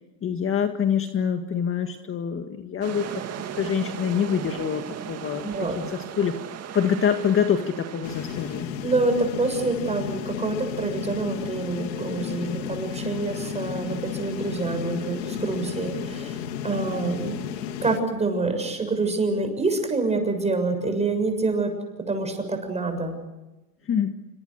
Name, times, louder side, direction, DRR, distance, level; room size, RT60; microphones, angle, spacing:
voice 1, 0.2-3.1 3.5-6.4 6.7-8.7 23.9-24.2, left 7 dB, 25° left, 6 dB, 1.8 m, -25 dB
sound 1, 2.8-8.6, right 9 dB, 30° right, 2.4 m, -37 dB
voice 2, 5.4-5.8 8.8-16.4 16.6-17.4 17.8-21.7 22.1-23.1, right 3 dB, 15° right, 6 dB, 6.9 m, -26 dB
sound 2, 8.0-18.0, left 8 dB, 85° left, 3.0 m, -33 dB
28.0 x 26.0 x 6.6 m, 1.0 s
supercardioid pair, 130°, 49 cm